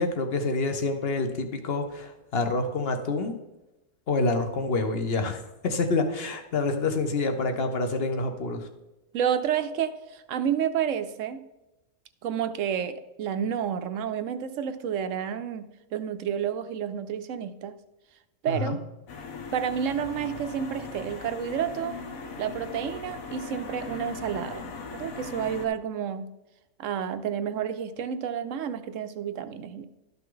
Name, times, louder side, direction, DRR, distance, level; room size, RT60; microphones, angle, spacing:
voice 1, 0.0-3.4 4.1-8.7 18.5-18.8, left 3 dB, 45° left, 7 dB, 1.1 m, -27 dB
voice 2, 9.1-11.4 12.2-17.7 18.4-18.8 19.5-22.0 22.4-26.3 26.8-29.8, right 8 dB, 65° right, 10 dB, 0.9 m, -30 dB
sound 1, 19.1-25.7, left 4 dB, 65° left, 1.4 m, -39 dB
12.5 x 5.8 x 3.9 m, 0.98 s
omnidirectional pair, 1.6 m